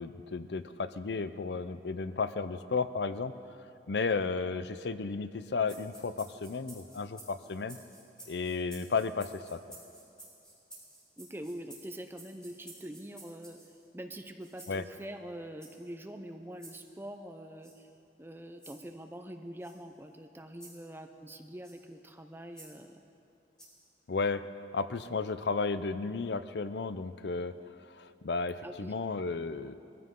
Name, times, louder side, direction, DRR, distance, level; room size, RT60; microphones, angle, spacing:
voice 1, 0.0-3.4 3.9-7.8 8.3-9.6 14.7-14.8 24.1-24.4 24.7-27.6 27.8-29.8, left 4 dB, 75° left, 12 dB, 0.6 m, -33 dB
sound 1, 5.6-13.8 14.4-14.8 15.6-15.9 16.6-16.8 17.6-17.8 18.6-18.8 19.6-19.7 20.6-20.8 21.6-21.8 22.5-22.7 23.6-23.8, right 2 dB, 5° left, 4.1 m, -52 dB
voice 2, 11.2-13.6 13.9-17.9 18.2-23.0 28.6-28.9, right 1 dB, 15° right, 6 dB, 0.6 m, -44 dB
22.0 x 15.0 x 3.8 m, 2.7 s
head